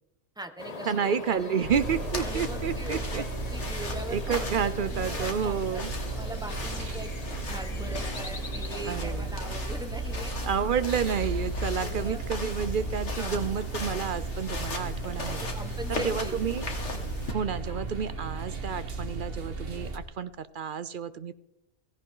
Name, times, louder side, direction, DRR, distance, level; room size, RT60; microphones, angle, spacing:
voice 1, 0.3-1.6 2.2-5.8 6.2-10.3 11.8-12.2 13.2-13.5 15.4-16.4, right 1 dB, 5° right, 5 dB, 1.3 m, -41 dB
sound 1, 0.6-8.9, left 4 dB, 30° left, 0.9 m, -42 dB
voice 2, 0.9-3.2 4.1-5.9 8.9-9.4 10.4-15.4 15.9-16.6 17.3-21.3, right 7 dB, 55° right, 14 dB, 0.5 m, -30 dB
sound 2, 1.6-20.0, right 2 dB, 40° right, 1.6 m, -35 dB
sound 3, 1.7-17.3, left 2 dB, 50° left, 2.4 m, -39 dB
17.5 x 16.0 x 3.9 m, 0.90 s
omnidirectional pair, 1.6 m